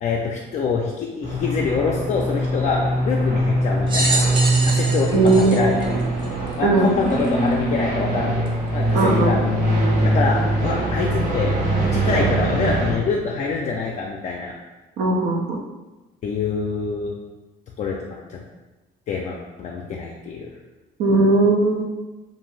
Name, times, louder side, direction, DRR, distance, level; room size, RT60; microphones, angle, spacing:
voice 1, 0.0-4.2 4.6-5.7 6.6-9.5 10.0-11.6 11.9-14.5 16.2-17.2 17.8-18.4 19.1-20.5, left 5 dB, 45° left, -2 dB, 0.4 m, -25 dB
sound 1, 1.2-12.9, right 1 dB, 45° right, 1.1 m, -22 dB
sound 2, 3.9-6.5 7.2-7.3 8.5-8.6, right 2 dB, 30° right, 0.6 m, -26 dB
voice 2, 5.1-5.7 6.6-6.9 8.9-9.4 15.0-15.6 21.0-21.9, right 2 dB, 80° right, 1 dB, 0.5 m, -18 dB
2.6 x 2.5 x 3.1 m, 1.1 s
cardioid pair, 110°, 17 cm